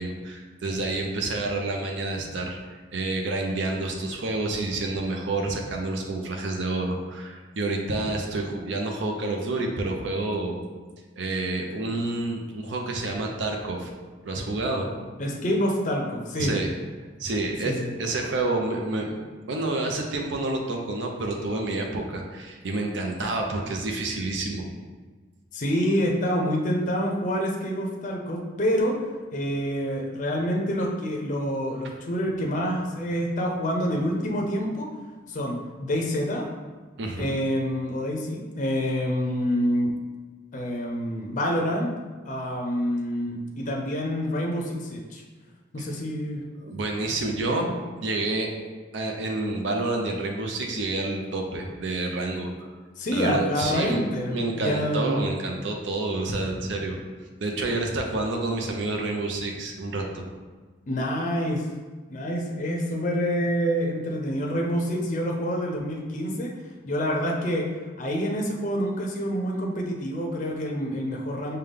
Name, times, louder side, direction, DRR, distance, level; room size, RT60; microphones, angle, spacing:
voice 1, 0.0-10.6 11.2-13.9 14.2-14.9 16.4-16.7 17.2-17.7 18.0-19.2 19.5-24.6 37.0-37.3 46.6-48.5 48.9-52.7 53.1-54.0 54.3-57.0 57.4-60.2, right 2 dB, 75° right, 1 dB, 0.6 m, -29 dB
voice 2, 15.2-16.5 17.6-17.9 25.5-29.0 29.3-34.9 35.3-36.5 37.2-39.9 40.5-41.9 42.2-45.2 45.7-46.4 53.0-55.3 60.9-61.7 62.1-66.5 66.9-67.7 68.0-71.6, equal, 40° left, 0 dB, 0.5 m, -27 dB
5.1 x 2.2 x 3.4 m, 1.4 s
head